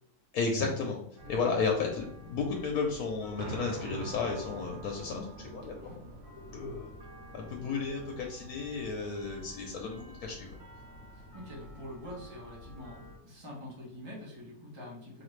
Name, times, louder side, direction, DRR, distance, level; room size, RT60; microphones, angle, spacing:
voice 1, 0.3-1.0 1.3-6.0 6.5-6.9 7.3-10.6, left 4 dB, 75° left, 1 dB, 1.1 m, -33 dB
sound 1, 1.2-13.2, equal, 55° right, 1.3 m, -50 dB
sound 2, 3.4-14.5, right 3 dB, 90° right, 1.3 m, -48 dB
voice 2, 11.1-15.2, left 1 dB, 25° right, -4 dB, 0.7 m, -46 dB
4.4 x 2.4 x 3.1 m, 0.75 s
omnidirectional pair, 1.6 m